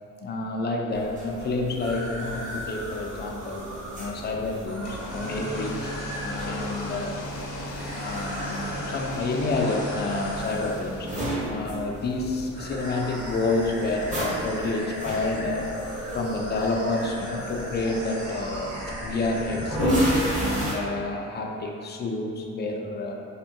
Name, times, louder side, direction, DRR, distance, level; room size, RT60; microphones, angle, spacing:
voice 1, 0.2-7.2 7.8-15.6 16.1-18.7 19.0-23.1, left 2 dB, 35° left, 1 dB, 0.4 m, -29 dB
sound 1, 0.9-20.7, equal, 25° right, 0.9 m, -34 dB
sound 2, 1.8-6.9 7.8-9.1 9.5-10.8 12.5-20.1 20.4-20.6, equal, 50° right, 1.2 m, -38 dB
sound 3, 4.7-11.4, equal, 85° left, 0.6 m, -36 dB
3.5 x 2.1 x 2.6 m, 2.6 s
cardioid pair, 90°, 30 cm